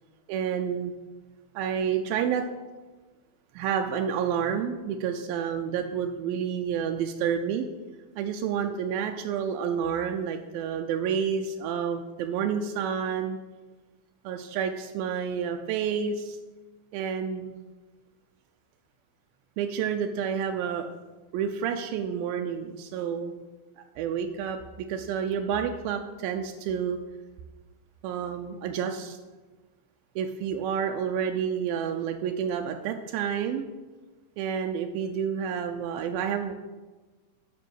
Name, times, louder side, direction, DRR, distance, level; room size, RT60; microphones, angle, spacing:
voice 1, 0.3-0.9 1.6-2.5 3.5-7.7 8.2-13.4 14.3-16.4 16.9-17.5 19.6-20.9 21.3-23.3 24.0-27.0 28.0-29.2 30.2-33.7 34.4-36.5, right 7 dB, 90° right, 4 dB, 2.4 m, -29 dB
7.2 x 6.1 x 7.8 m, 1.3 s
omnidirectional pair, 4.1 m